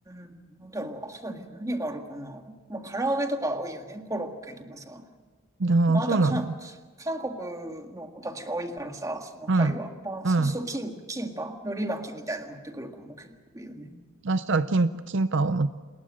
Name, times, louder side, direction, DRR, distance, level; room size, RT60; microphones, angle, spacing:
voice 1, 0.1-5.1 5.9-6.5 7.0-14.0, right 1 dB, 15° right, 6 dB, 1.8 m, -34 dB
voice 2, 5.6-6.5 9.5-9.7 10.2-10.6 14.2-15.7, right 3 dB, 60° right, 13 dB, 0.6 m, -23 dB
28.5 x 20.5 x 6.4 m, 1.4 s
head